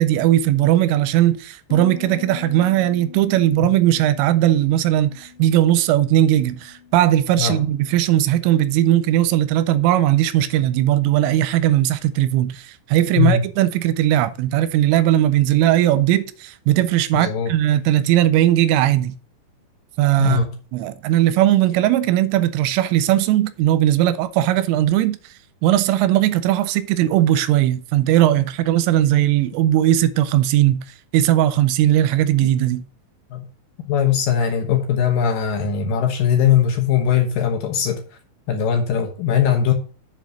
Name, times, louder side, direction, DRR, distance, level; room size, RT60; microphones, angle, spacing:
voice 1, 0.0-19.2 20.0-20.4 20.7-25.2 25.6-30.8 31.1-32.8, right 13 dB, 85° right, 3.1 m, -18 dB
Bass guitar, 1.7-7.9, left 8 dB, 60° left, 2.4 m, -41 dB
voice 2, 17.1-17.5 20.2-20.5 33.3-33.4 33.9-38.0 38.5-39.7, left 8 dB, 80° left, 2.0 m, -20 dB
7.5 x 5.2 x 6.6 m
omnidirectional pair, 5.7 m